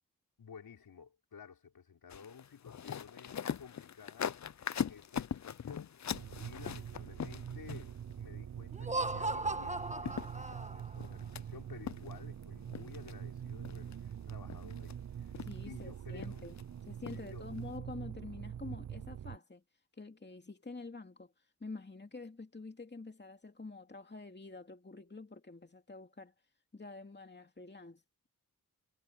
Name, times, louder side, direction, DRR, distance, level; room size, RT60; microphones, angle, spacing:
voice 1, 0.4-6.0 6.4-16.4 17.1-17.5, left 6 dB, 85° left, 4.4 m, -54 dB
sound 1, 2.1-8.1 9.6-9.7 10.0-11.4 11.9-12.4 12.7-13.1 13.6-13.9 14.3-14.9 15.3-15.8 16.2-16.6 17.1-17.3 17.6-17.7, left 8 dB, 50° left, 0.6 m, -41 dB
sound 2, 6.1-19.4, right 9 dB, 55° right, 0.6 m, -44 dB
Laughter, 8.7-11.1, right 2 dB, 20° right, 1.6 m, -37 dB
voice 2, 15.4-19.6 20.0-21.3 21.6-26.3 26.7-28.3, left 3 dB, 30° left, 2.6 m, -47 dB
cardioid pair, 50°, 36 cm